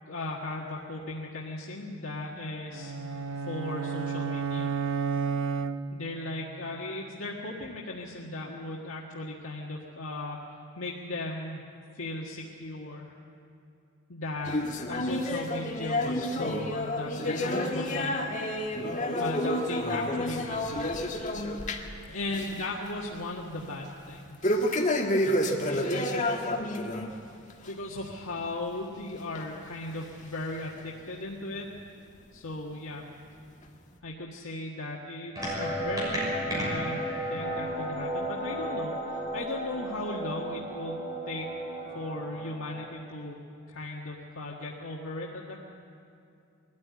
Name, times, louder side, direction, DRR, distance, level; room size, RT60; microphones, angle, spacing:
voice 1, 0.0-2.9 3.5-4.8 5.9-10.4 10.8-11.6 11.9-13.1 14.1-14.6 14.9-18.2 19.2-20.8 22.1-24.7 25.5-26.3 27.6-31.7 32.3-33.1 34.0-41.0 41.3-41.5 41.9-43.4 43.7-45.5, left 2 dB, 80° left, -3 dB, 1.7 m, -37 dB
sound 1, 2.7-6.3, right 6 dB, 65° right, 0.7 m, -31 dB
sound 2, 14.4-22.0 22.3-22.6 23.0-23.1 24.4-27.1 27.5-27.7 28.4-28.5 29.4-29.5 30.2-30.3, left 1 dB, 35° left, 1.6 m, -29 dB
sound 3, 35.4-42.8, right 1 dB, 15° right, 6.2 m, -33 dB
21.5 x 14.0 x 9.5 m, 2.7 s
head